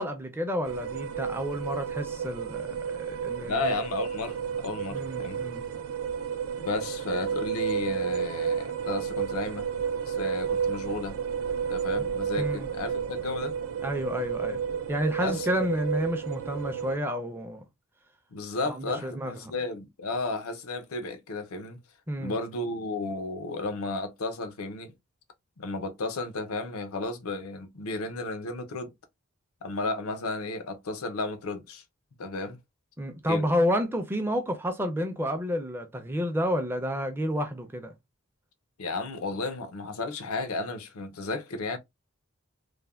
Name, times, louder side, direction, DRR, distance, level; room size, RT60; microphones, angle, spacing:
voice 1, 0.0-3.7 4.9-5.7 12.4-12.7 13.8-14.6 14.9-17.6 18.7-19.5 22.1-22.4 33.0-37.9, equal, 10° right, 0.4 m, -30 dB
sound 1, 0.6-17.0, right 7 dB, 75° right, 0.4 m, -32 dB
voice 2, 3.5-5.4 6.6-9.7 10.1-11.2 11.7-13.5 15.2-15.7 18.3-21.8 22.2-24.9 25.6-28.9 29.6-31.8 32.2-32.6 33.3-33.5 38.8-41.8, left 3 dB, 90° left, 0.6 m, -33 dB
3.2 x 2.1 x 2.3 m
head